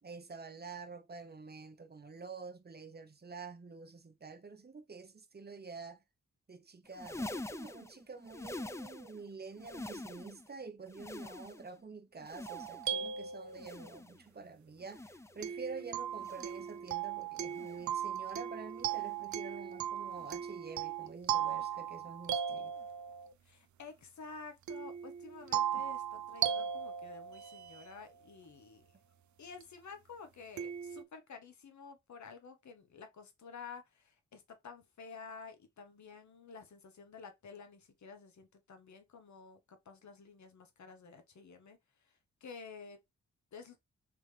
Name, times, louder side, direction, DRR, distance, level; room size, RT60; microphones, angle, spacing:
voice 1, 0.0-6.0 6.5-22.7 25.8-25.9 26.6-26.7, right 4 dB, 35° right, 0.8 m, -48 dB
sound 1, 6.8-9.3 9.5-10.5 10.8-11.8 12.2-13.1 13.5-14.3 14.8-15.5 16.1-16.7 17.4-18.0 18.8-19.2 20.1-20.4 21.4-21.6 22.8-22.9, left 2 dB, 10° left, 0.4 m, -46 dB
sound 2, 12.5-13.9 15.4-23.3 24.7-28.0 29.6-29.7 30.6-31.0, right 9 dB, 75° right, 0.5 m, -37 dB
voice 2, 23.4-28.8 29.4-42.1 42.4-43.0 43.5-43.8, left 5 dB, 70° left, 1.1 m, -51 dB
3.7 x 3.3 x 3.3 m
cardioid pair, 65°, 30 cm